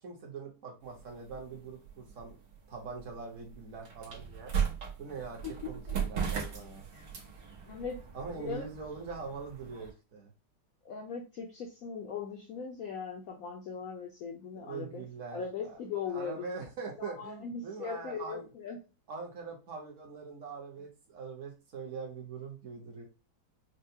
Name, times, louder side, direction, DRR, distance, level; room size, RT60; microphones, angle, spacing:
voice 1, 0.0-2.4 2.7-4.5 5.0-5.4 5.7-6.9 8.1-10.3 14.6-15.8 16.1-18.5 19.1-23.0, right 5 dB, 50° right, 0 dB, 1.3 m, -43 dB
sound 1, 0.8-9.9, right 7 dB, 70° right, 1.6 m, -38 dB
voice 2, 5.4-6.0 6.9-7.1 7.7-8.7 10.8-15.0 15.3-16.5 17.0-18.8, left 6 dB, 65° left, 0 dB, 0.9 m, -39 dB
5.6 x 2.2 x 2.7 m, 0.31 s
omnidirectional pair, 1.9 m